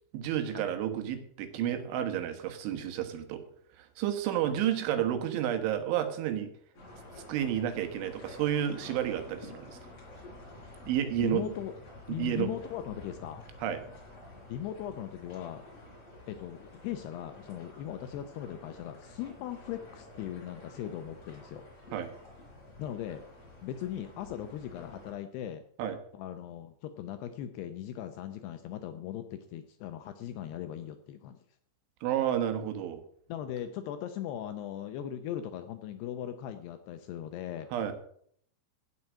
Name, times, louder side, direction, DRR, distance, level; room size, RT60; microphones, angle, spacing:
voice 1, 0.1-3.4 3.8-6.5 7.3-9.8 10.9-11.4 12.1-12.5 13.6-13.8 21.9-22.1 25.8-26.0 32.0-33.0 37.7-37.9, right 10 dB, 80° right, 8 dB, 3.8 m, -31 dB
sound 1, 6.7-25.1, left 2 dB, 30° left, 6.4 m, -50 dB
voice 2, 11.2-11.7 12.1-13.4 14.5-15.6 16.3-21.7 22.8-23.2 23.6-25.6 26.1-31.4 33.3-37.7, left 11 dB, 80° left, 8 dB, 2.5 m, -39 dB
16.5 x 6.0 x 7.3 m, 0.63 s
omnidirectional pair, 5.5 m